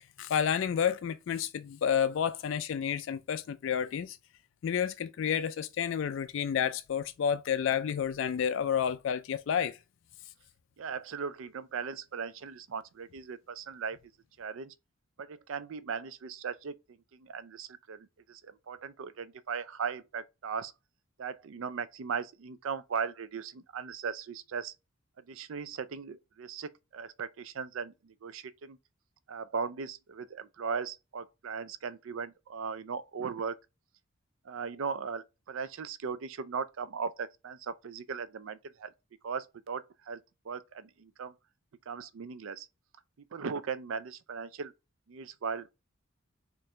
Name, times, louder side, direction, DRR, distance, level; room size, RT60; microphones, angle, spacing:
voice 1, 0.0-4.2 4.6-9.8, left 8 dB, 65° left, 0.3 m, -30 dB
voice 2, 10.8-14.0 14.4-14.7 15.2-16.7 17.1-20.7 21.2-24.7 25.3-28.8 29.3-33.6 34.5-38.9 39.2-40.2 40.4-41.3 41.9-42.7 43.3-44.7 45.1-45.7, right 6 dB, 70° right, 0.4 m, -38 dB
4.5 x 2.6 x 3.2 m
head